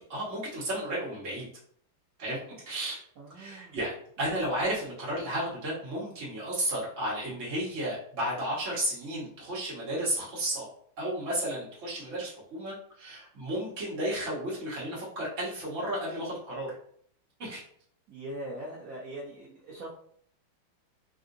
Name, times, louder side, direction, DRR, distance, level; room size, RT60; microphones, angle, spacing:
voice 1, 0.0-1.5 2.2-3.0 3.3-3.9 4.2-10.7 11.0-16.7 17.4-17.6, right 1 dB, 40° right, -6 dB, 1.5 m, -33 dB
voice 2, 3.2-3.8 18.1-19.9, right 1 dB, 85° right, -5 dB, 0.7 m, -41 dB
3.7 x 2.5 x 2.6 m, 0.63 s
omnidirectional pair, 2.3 m